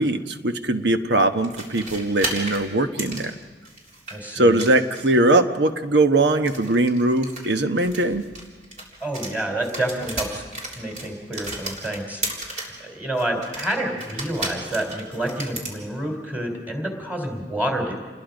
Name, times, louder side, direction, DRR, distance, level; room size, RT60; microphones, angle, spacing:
voice 1, 0.0-3.3 4.3-8.3, right 2 dB, 75° right, 7 dB, 1.2 m, -20 dB
sound 1, 1.4-4.2 4.5-5.3 6.3-9.3 9.6-12.8 13.2-15.8, right 2 dB, 40° right, 3.7 m, -34 dB
voice 2, 4.1-4.6 9.0-10.4 10.8-12.2 12.6-17.9, right 1 dB, 10° right, 2 dB, 3.7 m, -28 dB
28.5 x 21.0 x 5.3 m, 1.4 s
head